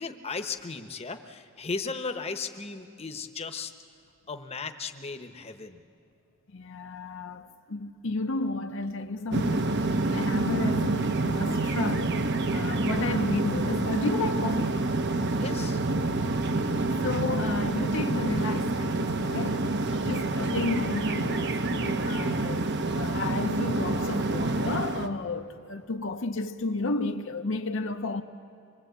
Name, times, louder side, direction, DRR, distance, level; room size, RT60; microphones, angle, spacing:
voice 1, 0.0-3.7 4.3-5.8 15.3-15.8 19.9-20.3, left 4 dB, 30° left, 0.9 m, -36 dB
voice 2, 6.5-14.8 17.0-19.7 20.0-28.2, left 3 dB, 60° left, 0.7 m, -33 dB
sound 1, 9.3-25.1, right 2 dB, 55° right, 1.0 m, -27 dB
25.5 x 22.0 x 8.2 m
head